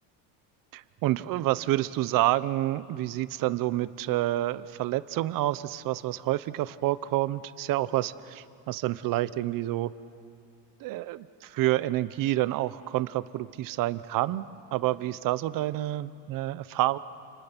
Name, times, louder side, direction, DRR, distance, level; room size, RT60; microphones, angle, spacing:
voice 1, 0.7-9.9 10.8-17.0, right 15 dB, 55° right, 15 dB, 0.9 m, -28 dB
29.5 x 28.5 x 6.0 m, 2.5 s
cardioid pair, 135°, 40 cm